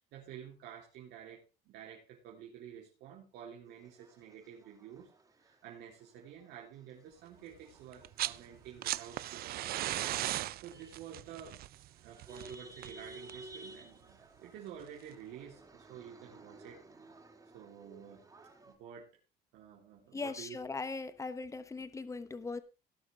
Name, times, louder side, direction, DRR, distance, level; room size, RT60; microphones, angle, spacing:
voice 1, 0.0-5.1 5.4-10.0 10.3-11.6 12.0-16.8 17.5-18.3 18.6-19.1 19.5-20.6, right 9 dB, 85° right, -2 dB, 3.7 m, -50 dB
sound 1, 3.7-18.7, right 2 dB, 20° right, 4.3 m, -56 dB
sound 2, 7.9-8.4 8.7-13.5 14.8-14.9, right 15 dB, 65° right, 0.5 m, -37 dB
voice 2, 20.1-22.6, left 4 dB, 20° left, 12 dB, 1.2 m, -39 dB
18.5 x 6.4 x 4.7 m, 0.30 s
cardioid pair, 110°, 17 cm